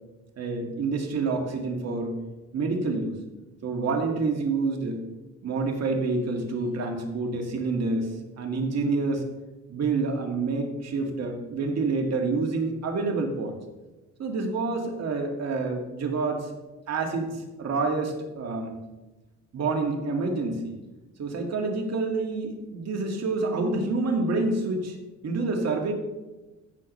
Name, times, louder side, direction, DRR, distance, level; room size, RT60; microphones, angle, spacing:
voice 1, 0.4-2.2 2.5-3.1 3.6-5.0 5.4-9.2 9.7-13.6 14.2-16.5 16.9-18.7 19.5-20.8 21.2-25.0 25.2-25.9, right 3 dB, 55° right, 2 dB, 2.0 m, -28 dB
15.5 x 6.8 x 3.2 m, 1.1 s
cardioid pair, 90°, 30 cm